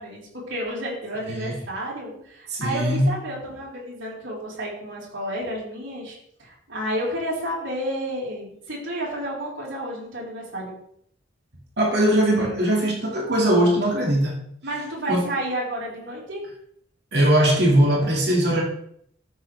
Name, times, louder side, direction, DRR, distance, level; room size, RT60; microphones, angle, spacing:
voice 1, 0.0-10.8 14.6-16.4, right 1 dB, 75° right, 4.4 m, -31 dB
voice 2, 2.5-3.1 11.8-14.4 15.1-15.2 17.1-18.6, right 1 dB, 55° right, 2.3 m, -20 dB
13.0 x 6.7 x 3.4 m
head